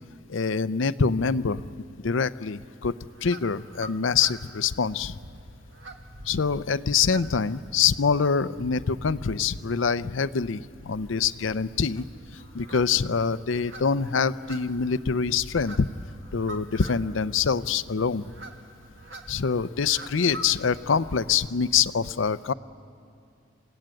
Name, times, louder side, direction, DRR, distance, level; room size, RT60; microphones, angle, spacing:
voice 1, 0.3-1.6 2.0-2.9 3.2-5.2 6.3-12.0 12.5-15.9 16.3-18.3 19.3-22.5, left 6 dB, 80° left, 14 dB, 0.6 m, -25 dB
sound 1, 2.9-21.5, right 1 dB, 70° right, 1.9 m, -45 dB
28.5 x 16.5 x 9.1 m, 2.6 s
head